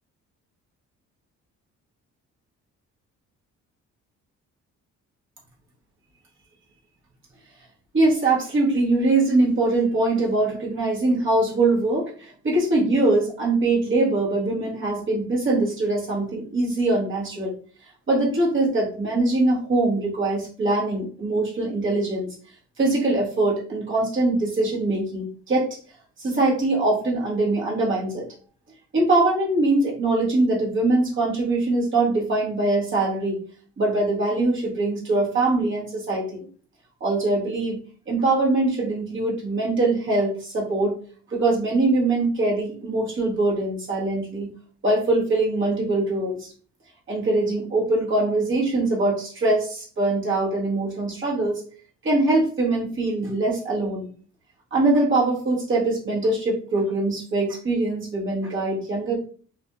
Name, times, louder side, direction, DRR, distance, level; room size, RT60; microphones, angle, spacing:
voice 1, 7.9-17.5 18.1-22.3 22.8-25.8 26.2-28.3 28.9-33.4 33.8-36.5 37.0-37.8 38.1-41.0 41.3-44.5 44.8-46.5 47.1-51.6 52.0-54.1 54.7-59.2, right 2 dB, 40° right, -4 dB, 1.2 m, -22 dB
2.5 x 2.5 x 2.2 m, 0.43 s
cardioid pair, 90°, 30 cm